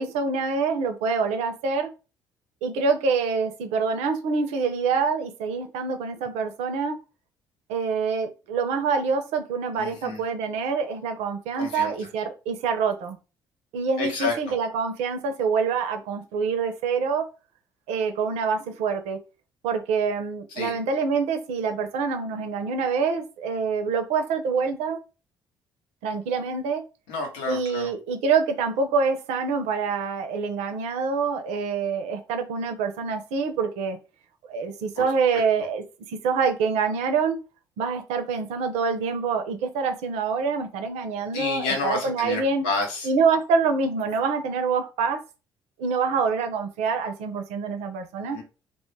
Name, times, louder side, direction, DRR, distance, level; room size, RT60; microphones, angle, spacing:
voice 1, 0.0-1.9 2.6-7.0 7.7-13.2 13.7-17.3 17.9-19.2 19.6-25.0 26.0-26.8 27.5-34.0 34.5-37.4 37.8-42.7 43.0-45.2 45.8-48.4, right 5 dB, 70° right, 0.5 m, -26 dB
voice 2, 9.8-10.2 11.5-11.9 14.0-14.3 20.6-20.7 27.1-27.9 35.0-35.1 35.6-35.7 41.3-43.1 48.3-48.4, left 3 dB, 75° left, 0.8 m, -29 dB
2.2 x 2.0 x 3.1 m
hypercardioid pair, 50°, 12 cm